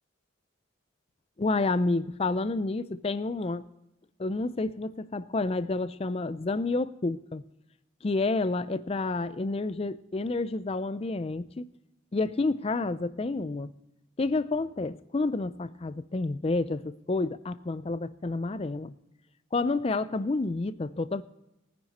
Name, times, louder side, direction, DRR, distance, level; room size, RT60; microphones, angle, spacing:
voice 1, 1.4-3.7 4.2-7.4 8.0-11.7 12.1-13.7 14.2-18.9 19.5-21.2, left 3 dB, 30° left, 0.4 m, -29 dB
19.0 x 9.7 x 4.2 m
head